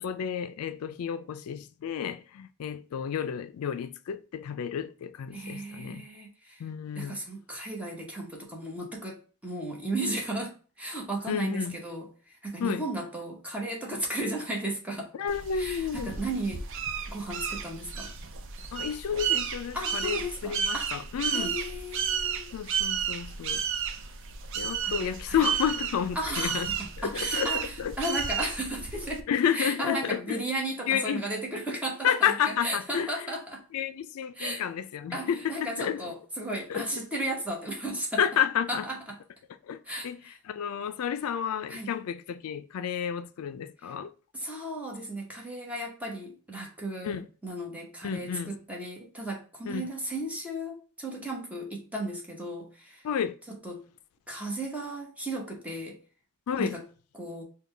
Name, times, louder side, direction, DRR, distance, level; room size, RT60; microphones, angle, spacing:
voice 1, 0.0-6.0 6.6-7.2 11.3-11.8 12.6-12.8 15.2-16.2 18.7-21.5 22.5-23.7 24.6-26.7 27.0-27.9 29.3-30.4 30.9-31.2 32.0-33.3 33.7-36.0 36.7-37.0 38.2-38.9 39.7-44.1 47.0-47.3 48.0-48.6 49.7-49.9 53.0-53.4 56.5-56.8, left 8 dB, 75° left, 0.3 m, -31 dB
voice 2, 5.3-6.6 6.9-15.1 15.5-16.6 17.1-18.1 19.7-21.0 21.3-22.5 24.8-25.4 26.1-29.3 29.5-33.6 34.3-34.6 35.1-38.2 38.7-39.2 39.8-40.3 41.7-41.9 43.8-43.9 44.3-53.0 53.5-53.8 54.3-56.0 56.6-56.8 57.1-57.4, right 1 dB, 5° right, 0.9 m, -35 dB
sound 1, 15.3-29.2, right 7 dB, 60° right, 0.5 m, -33 dB
3.7 x 2.2 x 3.2 m
head